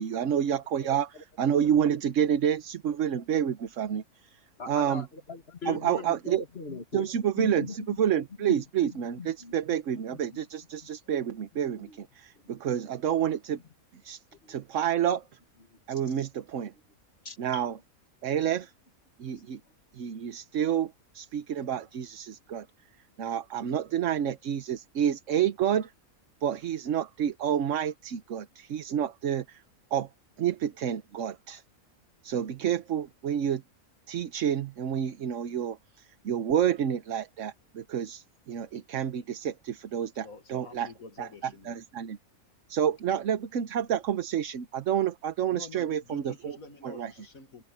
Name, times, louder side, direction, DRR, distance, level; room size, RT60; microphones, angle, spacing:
voice 1, 0.0-1.1 1.4-4.0 4.7-5.1 5.7-6.4 6.9-13.6 14.0-14.2 14.5-15.2 15.9-16.7 17.4-17.8 18.2-18.7 19.2-19.6 19.9-22.7 23.2-25.9 26.4-29.6 29.9-30.1 30.4-31.6 32.2-33.6 34.1-40.9 41.2-41.3 41.7-42.2 42.7-46.6 46.8-47.1, right 9 dB, 60° right, 1.2 m, -29 dB
voice 2, 4.6-7.1 7.4-8.0 8.4-8.5 8.8-9.6 10.1-10.4 11.8-12.0 14.4-14.6 15.9-16.0 17.2-17.7, left 5 dB, 45° left, 2.3 m, -40 dB
voice 3, 40.2-41.8 45.5-47.6, left 3 dB, 70° left, 2.3 m, -47 dB
omnidirectional pair, 1.5 m